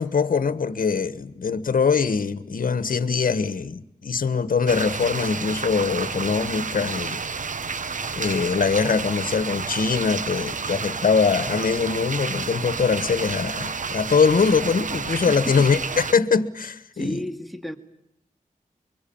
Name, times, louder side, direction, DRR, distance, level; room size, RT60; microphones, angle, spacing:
voice 1, 0.0-7.2 8.2-17.2, left 5 dB, 75° left, 1.4 m, -22 dB
sound 1, 4.7-16.1, right 5 dB, 65° right, 1.0 m, -30 dB
voice 2, 15.2-15.7 16.9-17.8, equal, ahead, 2.1 m, -32 dB
24.5 x 24.0 x 8.8 m
wide cardioid pair, 65°, 14 cm